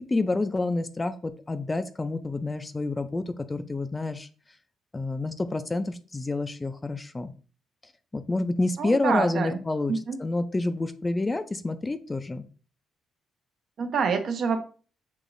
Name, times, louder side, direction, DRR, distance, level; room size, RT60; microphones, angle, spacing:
voice 1, 0.0-4.3 4.9-7.3 8.1-9.9 10.2-12.4, left 2 dB, 20° left, 10 dB, 0.4 m, -28 dB
voice 2, 8.8-9.6 9.9-10.2 13.8-14.6, right 5 dB, 60° right, 6 dB, 0.7 m, -26 dB
6.5 x 3.0 x 2.6 m, 0.39 s
cardioid pair, 90°, 0 cm